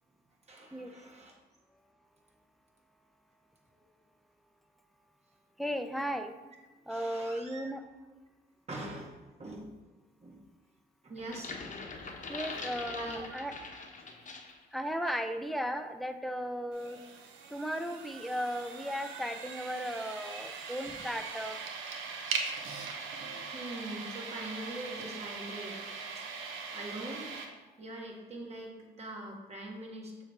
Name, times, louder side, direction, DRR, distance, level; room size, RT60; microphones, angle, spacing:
voice 1, 0.5-1.3 3.8-3.9 6.9-7.7 8.7-9.7 10.2-10.4 11.0-12.1 12.9-13.3 18.8-19.0 20.9-21.0 23.5-25.9 26.1-26.4 26.7-27.3 27.8-30.2, right 1 dB, 30° right, 0 dB, 1.7 m, -43 dB
voice 2, 5.6-6.3 6.9-7.8 12.3-13.5 14.7-17.0 17.5-21.6, equal, ahead, 7 dB, 0.5 m, -36 dB
sound 1, 11.2-14.6 15.0-15.3, left 4 dB, 40° left, 1.0 m, -43 dB
sound 2, 16.7-27.5, right 5 dB, 85° right, 0.9 m, -41 dB
7.1 x 3.3 x 5.7 m, 1.2 s
cardioid pair, 90°, 20 cm